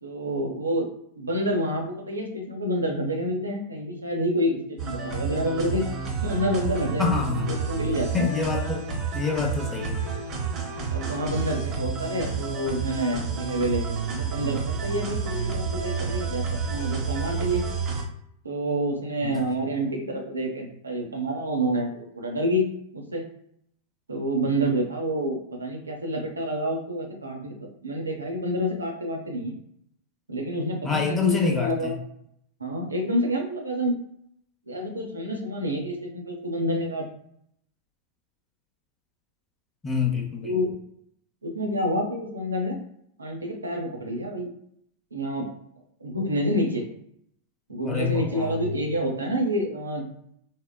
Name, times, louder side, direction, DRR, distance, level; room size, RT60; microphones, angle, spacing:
voice 1, 0.0-0.9 1.2-5.9 6.2-7.1 7.4-8.3 10.0-10.1 10.9-17.6 18.4-22.7 22.9-23.2 24.1-27.5 27.8-29.6 30.3-31.9 32.6-34.0 34.7-37.1 40.4-40.7 41.4-42.8 43.2-44.5 45.1-45.5 46.0-46.9 47.7-50.0, equal, 80° right, 1 dB, 0.6 m, -28 dB
sound 1, 4.8-18.0, right 5 dB, 30° right, 0.7 m, -30 dB
voice 2, 7.0-7.5 8.1-10.0 19.2-19.4 30.8-32.0 39.8-40.6 47.9-48.7, left 5 dB, 15° left, 0 dB, 0.6 m, -27 dB
3.6 x 2.1 x 2.2 m, 0.70 s
figure-of-eight pair, 90°, 0 cm